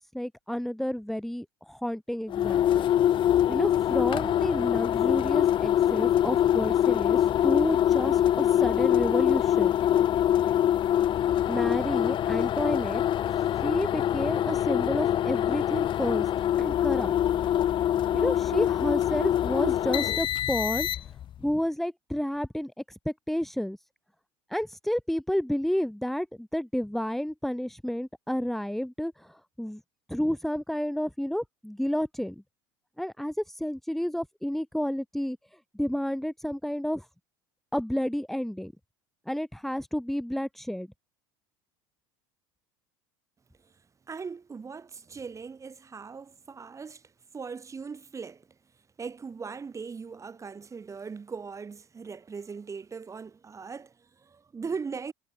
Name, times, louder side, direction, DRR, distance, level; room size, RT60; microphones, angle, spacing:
voice 1, 0.0-2.8 3.5-9.7 11.5-13.0 13.6-16.3 16.6-17.1 18.1-20.9 21.4-23.8 24.5-29.8 30.1-32.4 33.0-35.4 35.7-37.1 37.7-38.7 39.3-40.9, equal, ahead, 4.1 m, -30 dB
sound 1, 2.3-21.3, left 11 dB, 45° left, 1.0 m, -24 dB
voice 2, 44.1-48.6 49.0-55.1, right 5 dB, 25° right, 6.4 m, -39 dB
hypercardioid pair, 85°, 12 cm